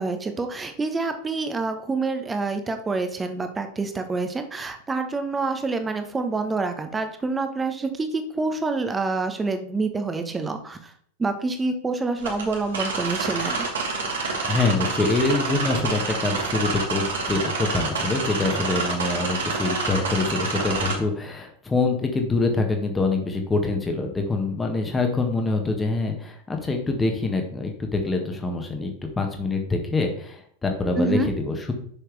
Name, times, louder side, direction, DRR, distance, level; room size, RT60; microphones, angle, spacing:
voice 1, 0.0-10.9 11.2-13.7 31.0-31.3, right 3 dB, 15° right, 7 dB, 1.2 m, -27 dB
sound 1, 12.2-21.0, right 3 dB, 65° right, 2.0 m, -28 dB
voice 2, 14.4-31.7, left 3 dB, 15° left, 3 dB, 1.5 m, -25 dB
10.0 x 6.5 x 3.4 m, 0.62 s
figure-of-eight pair, 90°, 0 cm